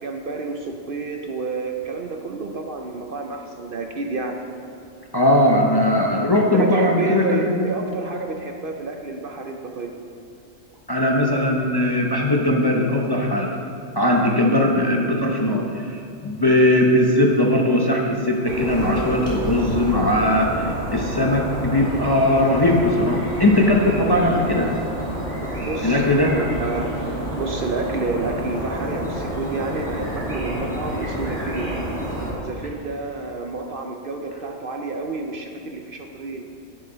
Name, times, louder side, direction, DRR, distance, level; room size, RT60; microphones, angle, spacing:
voice 1, 0.0-4.4 6.5-10.0 25.6-31.8 32.4-36.5, right 3 dB, 55° right, 3 dB, 0.7 m, -30 dB
voice 2, 5.1-7.7 10.9-13.5 13.9-24.7 25.8-26.4, left 1 dB, 25° left, -1 dB, 0.6 m, -19 dB
sound 1, 18.4-32.3, equal, 75° right, 2.5 m, -29 dB
10.5 x 9.0 x 3.9 m, 2.5 s
omnidirectional pair, 1.3 m